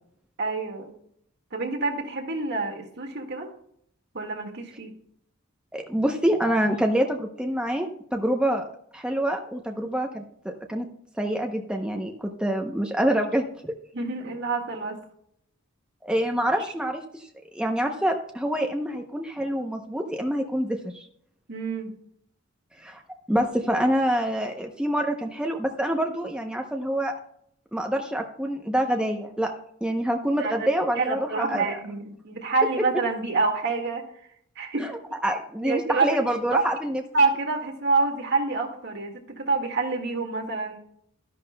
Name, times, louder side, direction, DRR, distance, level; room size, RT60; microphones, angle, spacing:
voice 1, 0.4-0.9 1.5-3.5 4.1-4.9 13.9-15.0 21.5-21.9 30.4-30.7 31.0-34.0 34.6-34.8 35.6-36.1 36.5-36.6 37.1-40.8, right 3 dB, 55° right, 3 dB, 1.8 m, -27 dB
voice 2, 5.7-8.6 8.9-10.9 11.2-13.7 16.0-17.3 17.5-21.1 22.8-23.0 23.3-27.1 27.7-29.5 29.8-31.2 31.5-31.8 34.8-34.9 35.2-37.0, right 1 dB, 5° right, 2 dB, 0.7 m, -26 dB
12.5 x 10.5 x 2.2 m, 0.68 s
head